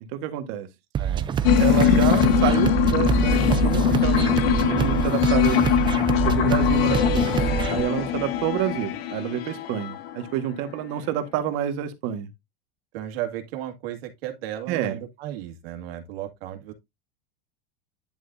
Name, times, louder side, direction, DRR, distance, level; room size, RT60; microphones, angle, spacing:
voice 1, 0.1-0.7 1.6-7.4 7.7-12.3 14.7-14.9, right 11 dB, 50° right, 1.7 m, -28 dB
sound 1, 0.9-7.8, right 9 dB, 15° right, 0.5 m, -26 dB
voice 2, 1.0-1.5 12.9-16.7, right 12 dB, 85° right, 2.1 m, -35 dB
sound 2, 1.4-10.5, left 9 dB, 75° left, 1.6 m, -22 dB
10.5 x 6.2 x 2.7 m
supercardioid pair, 160°, 29 cm